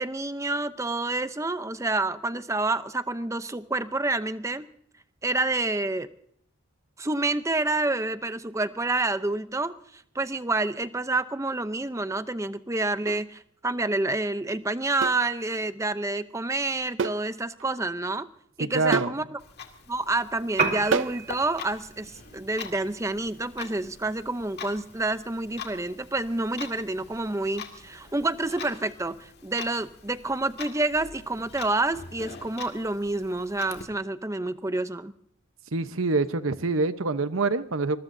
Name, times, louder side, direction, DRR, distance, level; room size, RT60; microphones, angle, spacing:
voice 1, 0.0-4.7 5.2-6.1 7.0-18.3 18.6-19.4 19.9-35.1, right 2 dB, 15° right, 12 dB, 0.6 m, -28 dB
sound 1, 13.0-13.3 15.0-15.3 17.0-17.3 17.6-17.7 18.9-19.2 20.9-21.2, right 5 dB, 65° right, 0.5 m, -28 dB
voice 2, 18.6-19.1 35.7-38.0, right 3 dB, 90° right, 11 dB, 1.0 m, -26 dB
Clock, 19.4-33.8, left 5 dB, 50° left, 2.0 m, -44 dB
Piano, 20.5-28.5, right 4 dB, 40° right, 1.8 m, -37 dB
25.0 x 21.0 x 2.7 m, 0.67 s
head